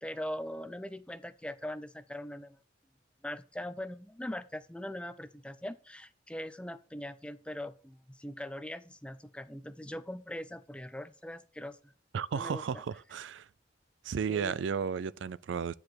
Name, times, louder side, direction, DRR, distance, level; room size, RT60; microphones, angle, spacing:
voice 1, 0.0-2.6 3.2-11.9 12.3-12.8 14.3-14.6, left 1 dB, 5° left, 0.5 m, -41 dB
voice 2, 12.1-13.5 14.0-15.7, right 6 dB, 80° right, 0.4 m, -33 dB
9.6 x 4.7 x 4.6 m
head